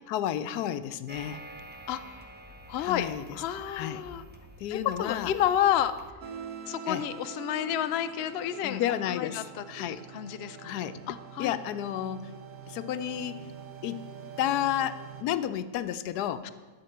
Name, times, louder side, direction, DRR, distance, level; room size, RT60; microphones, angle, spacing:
voice 1, 0.1-1.4 2.8-3.2 3.7-4.0 4.6-5.3 6.9-7.0 8.6-10.0 10.6-11.0 11.4-12.3 12.7-13.5 13.8-14.0 14.4-16.5, left 11 dB, 85° left, 13 dB, 1.1 m, -31 dB
sound 1, 1.1-6.1, right 1 dB, 15° right, 0.4 m, -48 dB
voice 2, 1.9-2.2 2.7-4.2 4.7-6.0 6.7-8.8 9.1-10.6 11.1-11.6 16.4-16.5, left 11 dB, 70° left, 11 dB, 0.6 m, -30 dB
sound 2, 6.2-15.2, right 7 dB, 70° right, 1.3 m, -44 dB
12.0 x 4.4 x 7.8 m, 1.4 s
omnidirectional pair, 1.7 m